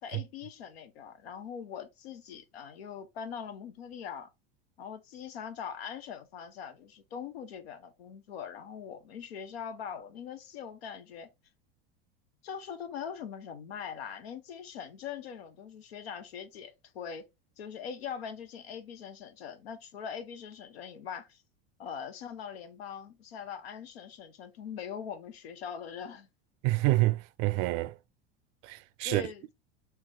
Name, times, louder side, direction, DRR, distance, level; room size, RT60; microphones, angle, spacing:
voice 1, 0.0-4.3 4.8-11.3 12.4-17.3 17.6-21.4 21.8-26.3 29.0-29.4, left 7 dB, 90° left, 0.9 m, -42 dB
voice 2, 26.6-27.9 28.6-29.2, right 19 dB, 55° right, 0.4 m, -27 dB
3.4 x 2.9 x 3.4 m
supercardioid pair, 110°, 30 cm